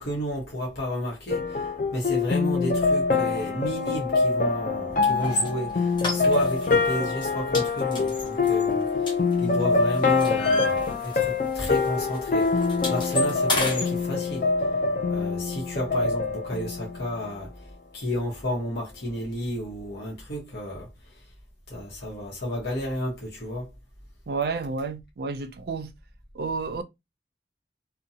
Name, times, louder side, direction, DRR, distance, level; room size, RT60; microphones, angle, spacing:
voice 1, 0.0-9.1 9.4-14.5 15.1-17.5 17.9-20.9 21.7-23.7, equal, 70° left, 1.0 m, -32 dB
sound 1, 1.3-17.4, left 4 dB, 45° left, 0.4 m, -25 dB
sound 2, 5.2-5.5 6.0-6.7 7.0-7.3 7.5-9.6 9.9-11.4 11.7-11.9 12.1-13.9, left 2 dB, 25° left, 0.8 m, -30 dB
voice 2, 24.3-25.9 26.3-26.8, right 4 dB, 65° right, 0.4 m, -30 dB
2.6 x 2.2 x 2.7 m
head